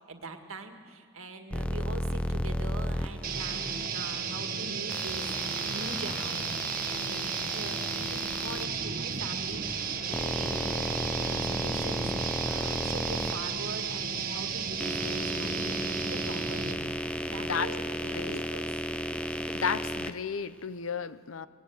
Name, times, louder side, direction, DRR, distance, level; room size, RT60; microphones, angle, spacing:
voice 1, 0.1-16.8 17.2-18.8, right 2 dB, 75° right, 6 dB, 1.8 m, -43 dB
sound 1, 1.5-3.9 4.9-8.7 9.7-14.0 14.6-20.1, equal, 5° left, 0.6 m, -34 dB
sound 2, 3.2-16.9, right 6 dB, 45° right, 1.4 m, -34 dB
sound 3, 5.0-19.6, left 2 dB, 50° left, 1.9 m, -52 dB
voice 2, 18.1-18.4 19.3-21.5, left 6 dB, 65° left, 15 dB, 0.7 m, -33 dB
21.5 x 20.0 x 8.1 m, 2.1 s
head